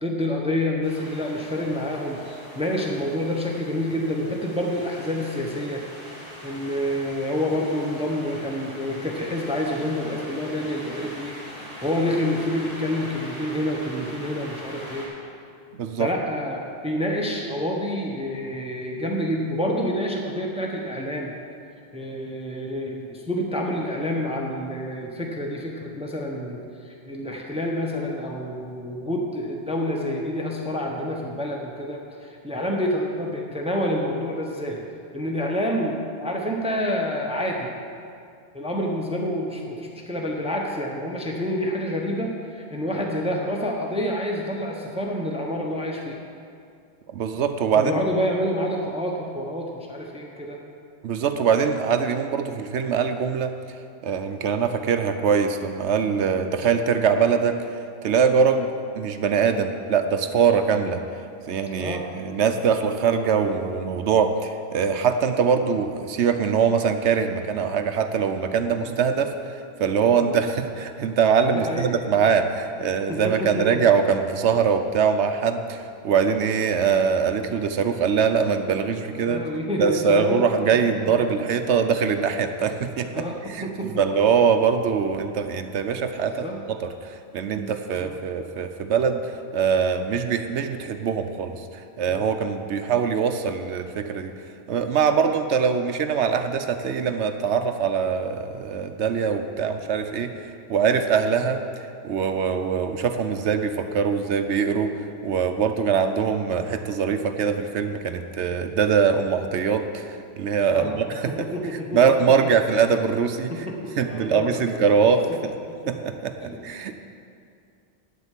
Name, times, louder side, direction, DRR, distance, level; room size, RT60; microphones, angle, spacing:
voice 1, 0.0-2.2 2.5-5.8 6.4-15.1 16.0-21.3 21.9-34.8 35.1-37.7 38.5-46.2 47.7-50.6 61.8-62.0 68.8-68.9 70.2-70.3 71.5-71.9 73.1-73.8 79.0-80.5 81.0-81.1 83.1-84.0 86.4-86.6 87.4-87.7 88.0-88.1 92.1-92.2 101.4-101.5 110.7-111.0 111.3-112.3 113.5-115.1 115.7-116.0 116.4-116.6, equal, 5° right, 0 dB, 0.9 m, -28 dB
sound 1, 0.8-15.1, equal, 70° left, 3.0 m, -41 dB
voice 2, 15.8-16.1 47.1-48.0 51.0-53.5 54.0-57.6 58.0-58.7 59.0-61.0 61.5-79.4 79.8-86.5 86.8-94.3 94.7-100.3 100.7-101.6 102.0-104.9 105.2-111.5 111.9-113.5 114.0-115.5 115.9-117.0, right 6 dB, 70° right, 8 dB, 1.0 m, -23 dB
9.4 x 7.8 x 7.4 m, 2.4 s
omnidirectional pair, 1.2 m